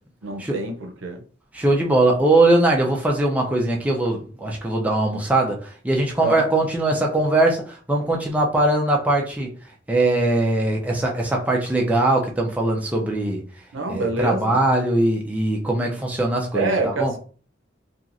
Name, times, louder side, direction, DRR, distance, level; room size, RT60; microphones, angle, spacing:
voice 1, 0.2-1.2 6.2-6.4 13.7-14.6 16.5-17.2, right 3 dB, 85° right, 0.6 m, -26 dB
voice 2, 1.5-9.5 9.9-13.4 13.9-17.1, right 2 dB, 10° right, 0.4 m, -21 dB
2.9 x 2.4 x 2.5 m
head